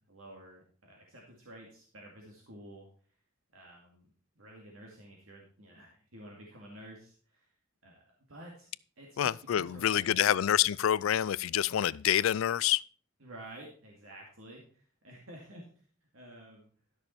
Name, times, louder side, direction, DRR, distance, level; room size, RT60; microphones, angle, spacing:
voice 1, 0.1-2.9 3.5-4.1 4.4-7.5 7.8-8.0 8.3-8.7 9.0-10.4 13.2-15.7 16.1-16.7, right 1 dB, 80° right, 2.2 m, -51 dB
voice 2, 9.2-12.8, left 10 dB, 80° left, 0.4 m, -27 dB
12.5 x 6.6 x 4.4 m
head